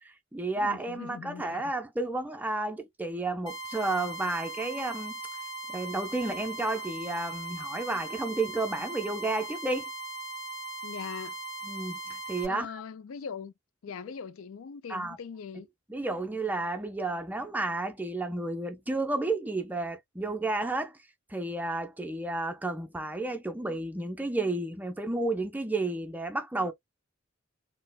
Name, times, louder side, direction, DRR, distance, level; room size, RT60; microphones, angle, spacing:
voice 1, 0.0-5.1 5.7-9.9 11.6-12.8 14.9-15.2 15.9-21.0 21.3-26.7, right 2 dB, 10° right, 0.4 m, -32 dB
voice 2, 0.6-1.7 10.8-11.4 12.5-13.5 13.8-15.7, left 6 dB, 75° left, 0.4 m, -41 dB
sound 1, 3.5-12.5, right 2 dB, 20° left, 1.5 m, -39 dB
4.1 x 2.0 x 2.2 m
head